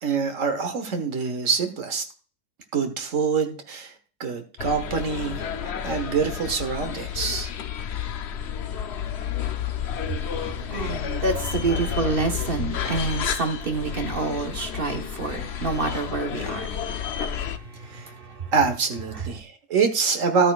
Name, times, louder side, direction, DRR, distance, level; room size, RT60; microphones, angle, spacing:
voice 1, 0.0-2.0 2.7-3.9 4.2-7.5 17.9-18.1 18.5-20.5, right 5 dB, 70° right, 1.7 m, -25 dB
sound 1, 4.6-17.6, left 8 dB, 60° left, 0.9 m, -31 dB
voice 2, 10.1-18.5 19.1-19.2, right 3 dB, 45° right, 1.4 m, -29 dB
13.0 x 9.0 x 2.4 m
omnidirectional pair, 1.4 m